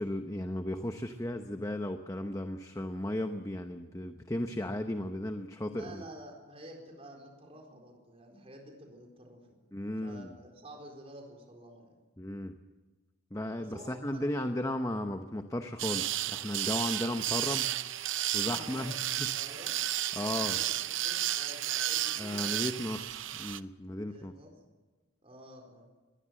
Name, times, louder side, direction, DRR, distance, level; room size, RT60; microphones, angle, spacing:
voice 1, 0.0-6.0 9.7-10.3 12.2-12.5 13.3-17.7 18.3-19.3 20.2-20.6 22.2-24.3, left 1 dB, 15° left, 7 dB, 0.8 m, -35 dB
voice 2, 5.7-9.6 10.0-11.9 13.5-14.2 18.4-19.0 19.3-19.8 20.4-22.7 24.0-24.5 25.2-25.9, right 1 dB, 30° right, 1 dB, 4.4 m, -50 dB
Oribital Buffer Sander Tool Metal, 15.8-23.6, right 13 dB, 70° right, 0.7 m, -33 dB
22.5 x 20.5 x 7.6 m, 1.2 s
head